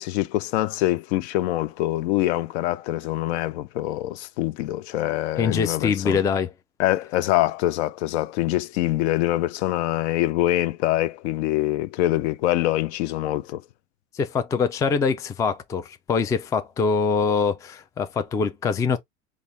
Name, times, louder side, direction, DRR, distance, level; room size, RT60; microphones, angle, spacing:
voice 1, 0.0-6.2 6.8-13.6, left 15 dB, 65° left, 0.5 m, -24 dB
voice 2, 5.4-6.5 14.1-19.0, left 5 dB, 10° left, 0.3 m, -24 dB
4.0 x 2.3 x 3.2 m
hypercardioid pair, 105°, 36 cm